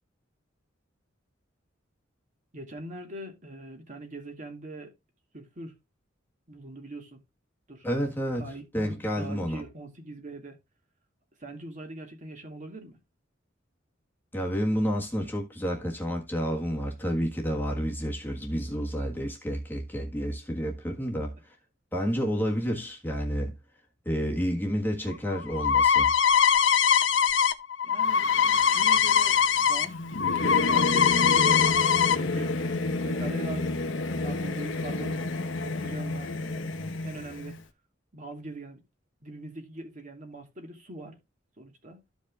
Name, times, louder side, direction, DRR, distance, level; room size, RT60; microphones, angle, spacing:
voice 1, 2.5-4.9 5.3-5.7 6.5-7.2 7.7-7.9 8.3-10.6 11.4-13.0 27.8-28.4 28.7-31.7 32.1-32.6 33.0-35.3 35.6-36.3 37.0-37.6 38.1-38.8 39.2-41.2 41.6-42.0, right 2 dB, 40° right, 2.2 m, -42 dB
voice 2, 7.8-9.6 14.3-21.3 21.9-23.5 24.0-26.1, equal, 10° left, 1.5 m, -30 dB
sound 1, 25.1-29.8 30.1-32.2, left 7 dB, 70° left, 0.7 m, -22 dB
Singing / Musical instrument, 28.0-37.6, left 2 dB, 85° left, 1.2 m, -31 dB
14.0 x 5.2 x 2.4 m
head